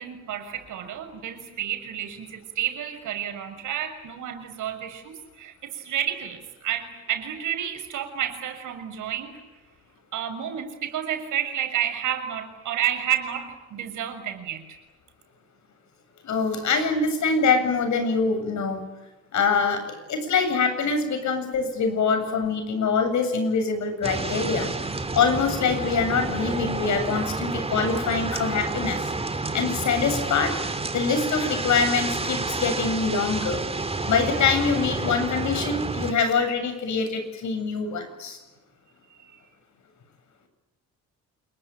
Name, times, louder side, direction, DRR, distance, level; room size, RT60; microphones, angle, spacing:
voice 1, 0.0-9.4 10.1-14.6 39.2-39.4, right 10 dB, 80° right, 6 dB, 6.5 m, -30 dB
voice 2, 16.2-18.9 19.3-24.7 25.1-29.1 29.5-30.6 30.9-33.6 34.1-38.4, left 5 dB, 70° left, 8 dB, 8.0 m, -24 dB
sound 1, 24.0-36.1, right 3 dB, 20° right, 2.7 m, -29 dB
28.0 x 21.5 x 9.3 m, 1.1 s
cardioid pair, 90°, 30 cm